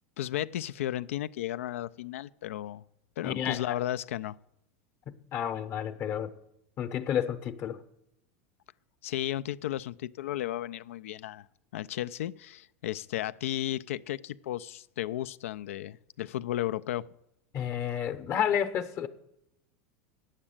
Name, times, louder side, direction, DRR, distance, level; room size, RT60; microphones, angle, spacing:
voice 1, 0.2-2.8 3.2-4.4 9.0-11.5 11.7-17.1, left 13 dB, 80° left, 0.4 m, -34 dB
voice 2, 3.2-3.8 5.1-6.3 6.8-7.8 17.5-19.1, left 9 dB, 40° left, 0.8 m, -31 dB
8.9 x 7.4 x 8.7 m
supercardioid pair, 120°, 7 cm